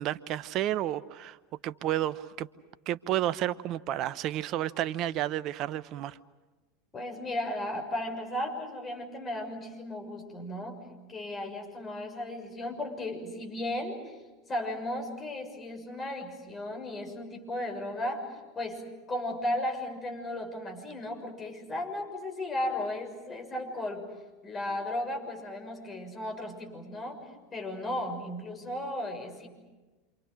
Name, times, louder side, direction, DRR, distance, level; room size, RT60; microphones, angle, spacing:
voice 1, 0.0-1.4 1.6-2.5 2.9-6.2, right 13 dB, 50° right, 16 dB, 0.9 m, -31 dB
voice 2, 6.9-10.8 11.1-14.2 14.5-24.1 24.4-29.5, left 1 dB, 25° left, 3 dB, 6.6 m, -35 dB
28.0 x 27.5 x 6.5 m, 1.2 s
hypercardioid pair, 85°, 0 cm